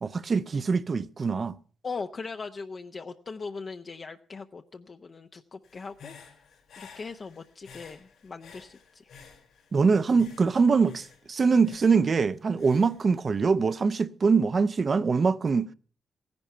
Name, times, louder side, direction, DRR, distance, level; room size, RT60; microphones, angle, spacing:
voice 1, 0.0-1.5 9.7-15.7, right 5 dB, 40° right, 0.6 m, -23 dB
voice 2, 1.8-6.4 6.8-9.1, left 4 dB, 40° left, 0.7 m, -40 dB
Human voice / Breathing, 5.6-9.8 10.1-13.7, left 5 dB, 80° left, 3.7 m, -52 dB
16.0 x 10.5 x 5.5 m
cardioid pair, 90°, 0 cm